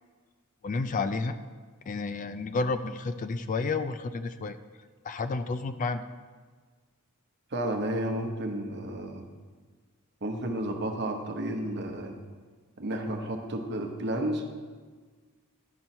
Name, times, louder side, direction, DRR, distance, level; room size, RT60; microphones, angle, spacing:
voice 1, 0.6-1.3 1.9-4.6 5.0-6.0, left 3 dB, 35° left, 11 dB, 0.3 m, -30 dB
voice 2, 7.5-9.3 10.2-12.1 12.8-14.4, right 1 dB, 50° right, 3 dB, 1.0 m, -32 dB
11.0 x 4.4 x 5.4 m, 1.5 s
head